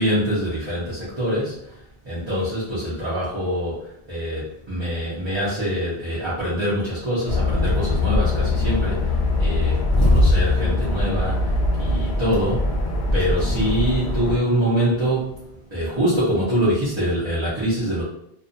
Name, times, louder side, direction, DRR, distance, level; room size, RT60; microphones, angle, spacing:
voice 1, 0.0-12.8 13.1-18.0, equal, 30° right, -10 dB, 0.7 m, -24 dB
sound 1, 7.3-14.4, left 2 dB, 55° left, 0.9 m, -21 dB
2.5 x 2.3 x 2.6 m, 0.74 s
omnidirectional pair, 1.1 m